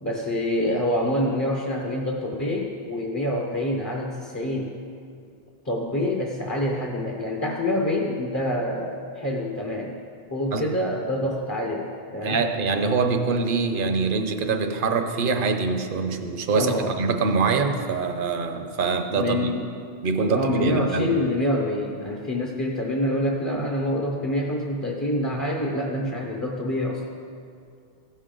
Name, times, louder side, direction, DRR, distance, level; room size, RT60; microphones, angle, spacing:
voice 1, 0.0-4.7 5.6-9.9 10.3-12.4 16.5-17.2 19.1-19.7 20.3-27.0, left 1 dB, 20° left, 0 dB, 0.7 m, -26 dB
voice 2, 12.2-19.5 20.0-21.2, right 4 dB, 60° right, 6 dB, 0.9 m, -24 dB
15.5 x 6.5 x 3.8 m, 2.3 s
omnidirectional pair, 1.0 m